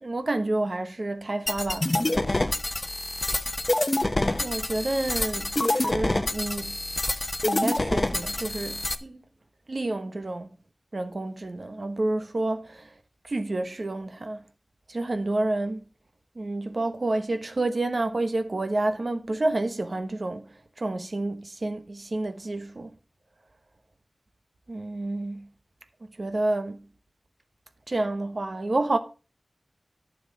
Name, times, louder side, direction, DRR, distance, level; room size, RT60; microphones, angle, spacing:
voice 1, 0.0-2.3 4.4-6.7 7.4-9.2 9.7-10.5 10.9-12.9 13.3-14.4 14.9-15.8 16.4-20.4 20.8-22.9 24.7-25.5 26.2-26.8 27.9-29.0, right 2 dB, 60° right, 1.1 m, -29 dB
sound 1, 1.5-9.0, left 2 dB, 40° left, 0.9 m, -27 dB
9.5 x 7.3 x 5.2 m
wide cardioid pair, 45°, 0 cm